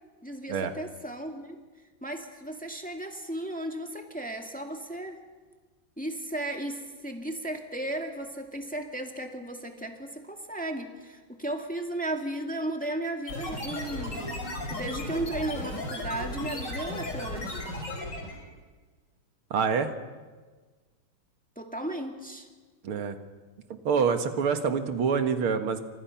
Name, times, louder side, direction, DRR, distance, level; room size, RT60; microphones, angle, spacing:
voice 1, 0.2-1.6 2.0-5.2 6.0-14.3 14.7-17.7 21.6-22.5, right 1 dB, 5° left, 3 dB, 2.0 m, -35 dB
sound 1, 13.3-18.4, left 1 dB, 55° left, 4.8 m, -35 dB
voice 2, 19.5-19.9 22.8-23.2 23.7-25.8, right 6 dB, 90° right, 7 dB, 2.5 m, -26 dB
29.5 x 26.0 x 5.9 m, 1.4 s
omnidirectional pair, 2.3 m